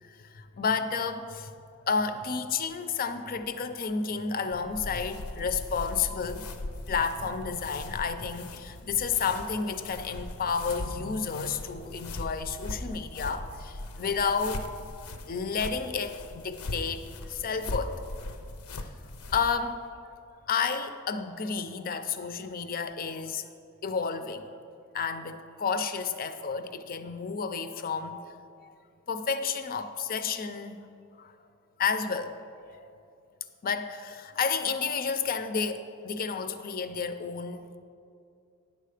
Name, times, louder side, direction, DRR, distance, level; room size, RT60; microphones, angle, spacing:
voice 1, 0.0-1.5 1.8-6.4 6.9-14.7 15.3-18.0 19.3-19.9 20.5-23.5 23.8-24.6 24.9-28.2 29.1-30.8 31.2-31.3 31.8-32.4 32.7-32.9 33.6-37.8, left 5 dB, 40° left, 10 dB, 0.5 m, -31 dB
sound 1, 4.5-19.5, left 2 dB, 90° left, 0.6 m, -40 dB
9.7 x 6.6 x 4.9 m, 2.5 s
head